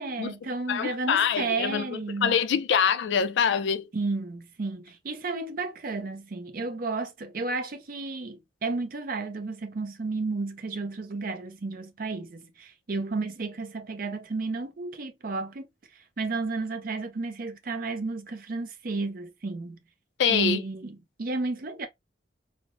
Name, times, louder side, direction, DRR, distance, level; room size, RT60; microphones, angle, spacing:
voice 1, 0.0-2.4 3.9-15.7 16.2-19.8 20.3-21.9, right 3 dB, 50° right, 0.5 m, -32 dB
voice 2, 0.7-1.9 2.2-3.9 20.2-20.6, left 7 dB, 65° left, 0.3 m, -24 dB
3.2 x 2.0 x 2.4 m
head